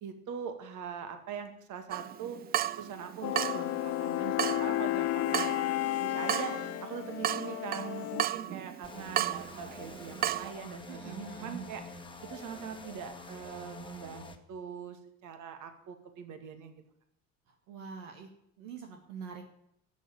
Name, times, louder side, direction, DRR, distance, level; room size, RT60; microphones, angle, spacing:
voice 1, 0.0-2.4 2.8-5.5 6.0-11.8 12.2-16.8, right 7 dB, 50° right, 7 dB, 2.3 m, -42 dB
Water tap faucet / Drip, 1.9-10.5, right 11 dB, 25° right, 0.4 m, -35 dB
sound 1, 3.2-8.3, left 15 dB, 40° left, 0.6 m, -32 dB
sound 2, 8.8-14.4, left 2 dB, 10° left, 1.7 m, -47 dB
voice 2, 10.9-11.7 17.5-18.3 18.6-19.5, right 6 dB, 70° right, 3 dB, 1.8 m, -44 dB
13.0 x 7.2 x 9.2 m, 0.75 s
figure-of-eight pair, 65°, 40 cm